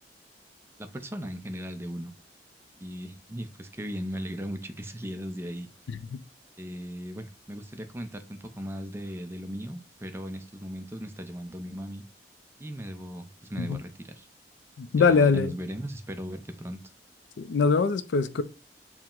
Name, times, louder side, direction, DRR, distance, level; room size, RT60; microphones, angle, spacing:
voice 1, 0.8-2.1 2.8-5.7 6.6-12.0 12.6-14.3 14.9-16.8, equal, 15° right, 0.4 m, -37 dB
voice 2, 14.8-15.5 17.4-18.4, left 5 dB, 85° left, 0.4 m, -23 dB
4.6 x 2.1 x 3.6 m
head